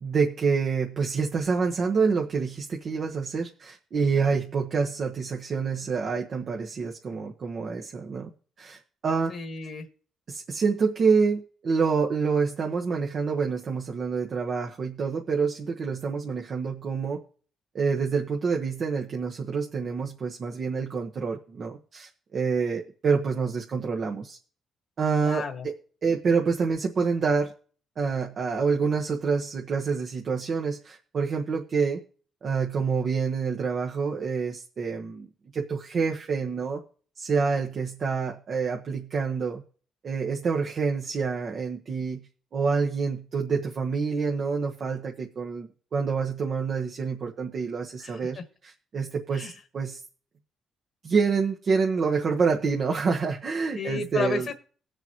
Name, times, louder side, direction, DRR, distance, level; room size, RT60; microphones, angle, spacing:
voice 1, 0.0-8.3 8.6-9.3 10.3-17.2 17.7-24.4 25.0-25.7 26.0-27.5 28.0-32.0 32.4-36.8 37.2-39.6 40.0-42.3 42.5-50.0 51.0-54.5, right 5 dB, 50° right, 1 dB, 1.2 m, -27 dB
voice 2, 9.3-9.9 25.2-25.7 48.0-48.4 49.3-49.5 53.7-54.5, left 4 dB, 55° left, 6 dB, 1.5 m, -32 dB
20.0 x 6.9 x 3.0 m, 0.42 s
cardioid pair, 90°, 0 cm